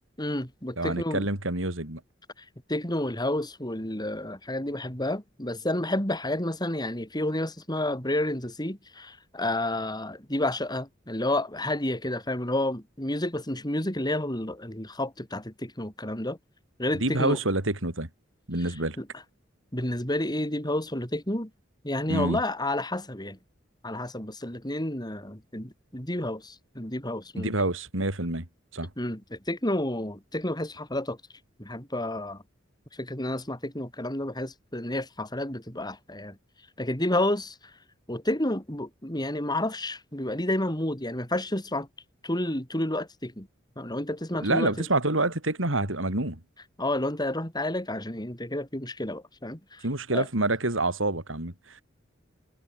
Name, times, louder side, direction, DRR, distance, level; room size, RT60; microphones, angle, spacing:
voice 1, 0.2-1.2 2.7-16.4 16.8-17.4 19.0-19.1 19.7-21.5 21.8-23.4 23.8-27.5 29.0-31.2 31.6-32.4 32.9-36.4 36.8-37.6 38.1-41.9 42.2-43.5 43.8-44.9 46.8-49.9 50.1-50.3, left 1 dB, 20° left, 7.0 m, -30 dB
voice 2, 0.8-2.0 17.0-18.1 18.5-19.0 22.1-22.4 27.4-28.5 28.7-28.9 44.4-46.4 49.8-51.8, right 2 dB, 80° right, 4.5 m, -27 dB
head